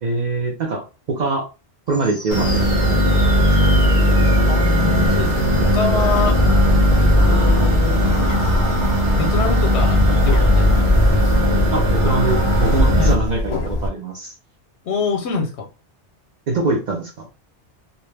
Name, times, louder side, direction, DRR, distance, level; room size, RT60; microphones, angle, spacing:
voice 1, 0.0-1.4 1.9-2.7 11.7-14.3 16.5-17.3, right 3 dB, 60° right, 1 dB, 0.5 m, -23 dB
sound 1, 1.9-13.1, equal, 5° left, 0.5 m, -35 dB
sound 2, 2.3-13.1, equal, 40° right, 0.8 m, -17 dB
voice 2, 4.5-5.5 5.7-6.4 7.2-8.3 9.2-10.7 13.0-13.1 14.8-15.7, left 5 dB, 80° left, 3 dB, 0.9 m, -25 dB
Bird, 5.1-13.9, left 1 dB, 60° left, 0.4 m, -22 dB
2.2 x 2.0 x 3.2 m, 0.30 s
omnidirectional pair, 1.2 m